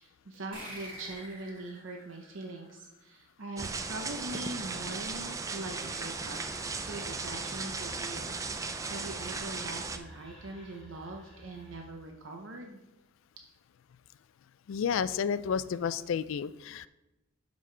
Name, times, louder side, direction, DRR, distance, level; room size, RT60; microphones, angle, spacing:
voice 1, 0.0-6.4 6.7-12.8, right 2 dB, 70° right, 2 dB, 0.7 m, -42 dB
sound 1, 0.5-3.6, right 1 dB, 45° right, 2.6 m, -48 dB
sound 2, 3.6-10.0, right 4 dB, 15° right, 0.3 m, -37 dB
Whispering, 5.1-12.1, equal, 5° left, 2.8 m, -53 dB
voice 2, 14.7-16.9, left 7 dB, 70° left, 16 dB, 0.3 m, -31 dB
11.5 x 5.2 x 3.3 m, 0.99 s
head